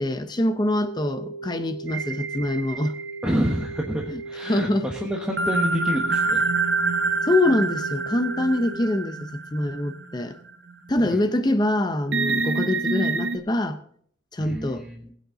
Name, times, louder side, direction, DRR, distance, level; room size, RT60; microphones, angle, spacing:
voice 1, 0.0-2.9 4.1-4.9 7.2-10.4 10.9-13.8 14.3-14.8, left 1 dB, 20° left, 0.6 m, -24 dB
sound 1, 0.8-8.7, right 3 dB, 70° left, 1.8 m, -37 dB
sound 2, 1.9-3.9 5.4-10.2 10.7-10.8 12.1-13.4, right 3 dB, 75° right, 0.9 m, -26 dB
voice 2, 3.2-6.4 11.0-11.2 14.4-15.1, equal, 5° right, 1.2 m, -28 dB
20.0 x 8.3 x 3.9 m
head